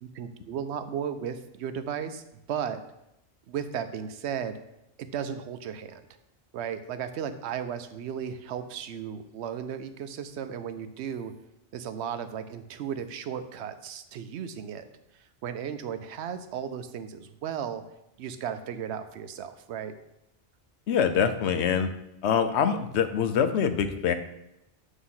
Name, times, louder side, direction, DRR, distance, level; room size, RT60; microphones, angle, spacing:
voice 1, 0.0-2.2 2.5-2.8 3.5-4.6 5.0-6.0 6.5-11.3 11.7-14.8 15.4-17.8 18.2-19.9, right 8 dB, 85° right, 10 dB, 0.9 m, -35 dB
voice 2, 20.9-21.9 22.2-24.1, left 7 dB, 90° left, 10 dB, 0.9 m, -24 dB
8.2 x 3.0 x 5.6 m, 0.86 s
omnidirectional pair, 1.1 m